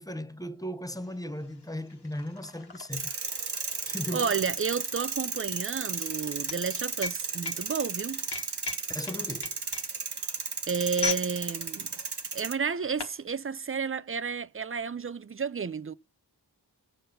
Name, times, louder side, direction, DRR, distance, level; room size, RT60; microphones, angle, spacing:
voice 1, 0.0-3.1 3.9-4.3 8.9-9.5, left 1 dB, 10° left, 0.7 m, -37 dB
sound 1, 1.0-1.1 1.4-11.3 11.6-11.9 12.6-13.2, left 5 dB, 70° left, 1.3 m, -38 dB
sound 2, 2.9-12.5, right 5 dB, 70° right, 1.3 m, -34 dB
voice 2, 4.1-8.3 10.7-11.9 12.3-15.9, right 6 dB, 30° right, 0.5 m, -31 dB
7.9 x 5.3 x 5.8 m
wide cardioid pair, 75°, 42 cm